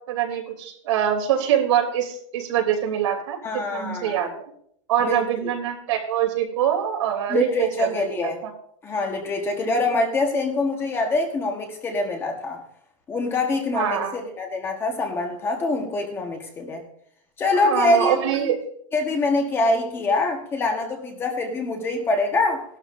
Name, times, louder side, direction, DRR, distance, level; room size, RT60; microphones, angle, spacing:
voice 1, 0.1-4.3 4.9-8.3 13.7-14.2 17.6-18.6, right 10 dB, 65° right, 1 dB, 3.0 m, -24 dB
voice 2, 3.4-4.2 5.0-5.5 7.3-8.4 8.8-12.6 13.1-16.8 17.4-18.5 18.9-22.6, left 2 dB, 15° left, 3 dB, 1.2 m, -24 dB
18.0 x 12.5 x 2.6 m, 0.68 s
supercardioid pair, 170°, 16 cm